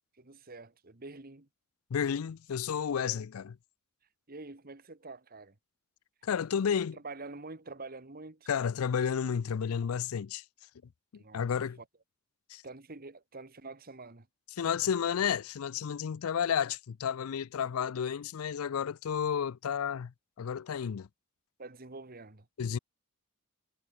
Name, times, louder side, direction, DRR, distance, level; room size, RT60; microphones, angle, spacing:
voice 1, 0.1-1.5 3.0-3.2 4.3-5.6 6.7-8.5 11.1-11.5 12.6-14.3 21.6-22.5, right 3 dB, 45° right, 1.7 m, -46 dB
voice 2, 1.9-3.6 6.2-7.0 8.5-10.4 11.1-11.8 12.5-12.6 14.6-21.1 22.6-22.8, left 7 dB, 85° left, 0.4 m, -32 dB
head